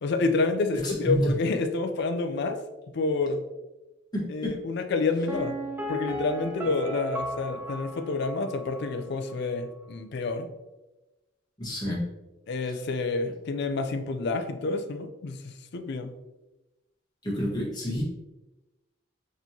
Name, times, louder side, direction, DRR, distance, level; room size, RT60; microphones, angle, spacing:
voice 1, 0.0-2.6 2.9-3.4 4.3-5.6 5.9-10.5 12.5-16.1, left 3 dB, 60° left, 8 dB, 0.4 m, -28 dB
voice 2, 0.8-1.3 4.1-4.6 11.6-12.0 12.7-12.8 17.2-18.0, equal, 20° left, -6 dB, 1.2 m, -29 dB
Piano, 5.3-9.0 9.3-9.4, equal, 10° right, 0.4 m, -36 dB
4.3 x 3.0 x 2.7 m, 1.0 s
head